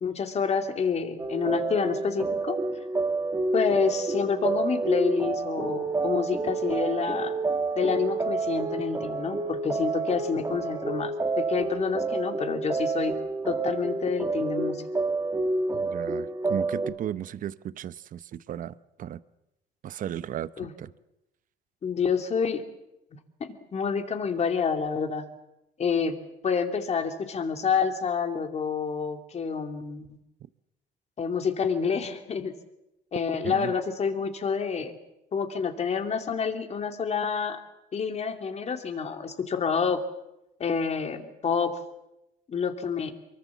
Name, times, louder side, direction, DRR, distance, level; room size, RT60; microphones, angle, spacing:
voice 1, 0.0-2.6 3.5-7.4 7.7-13.1 13.4-14.8 20.6-20.7 21.8-22.6 23.1-25.3 25.8-26.2 26.4-30.2 31.2-32.5 33.1-35.0 35.3-37.6 37.9-40.1 40.6-41.8 42.5-43.1, left 6 dB, 40° left, 2.7 m, -28 dB
sound 1, 1.2-16.9, right 3 dB, 20° right, 2.4 m, -29 dB
voice 2, 15.7-19.2 19.8-20.9 33.4-33.7, right 10 dB, 50° right, 0.8 m, -35 dB
24.0 x 23.0 x 7.3 m
cardioid pair, 110°, 17 cm